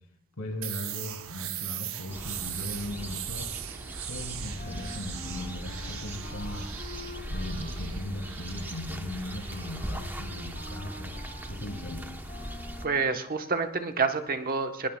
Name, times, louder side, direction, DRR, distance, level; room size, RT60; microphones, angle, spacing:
voice 1, 0.4-3.5 4.1-6.7 7.3-11.1 11.5-12.1, left 1 dB, 75° left, 3 dB, 3.1 m, -38 dB
sound 1, 0.6-12.2, right 12 dB, 65° right, 0.8 m, -41 dB
sound 2, 2.1-12.9, right 1 dB, 10° right, 0.9 m, -39 dB
Wind instrument woodwind instrument, 4.5-13.1, left 2 dB, 45° left, 3.8 m, -47 dB
voice 2, 12.8-14.9, right 4 dB, 40° right, 6 dB, 1.1 m, -28 dB
22.0 x 19.5 x 2.3 m, 0.75 s
head